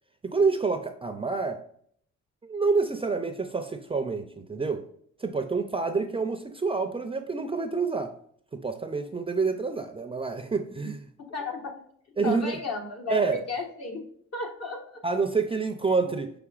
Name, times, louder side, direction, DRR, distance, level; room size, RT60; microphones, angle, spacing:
voice 1, 0.2-1.6 2.4-4.8 5.2-8.1 8.5-11.1 12.2-12.6 13.1-13.5 15.0-16.3, right 4 dB, 20° right, 0.4 m, -28 dB
voice 2, 11.2-11.8 12.2-15.0 16.1-16.2, left 3 dB, 55° left, 1.4 m, -34 dB
5.9 x 3.3 x 2.4 m
cardioid pair, 90°, 30 cm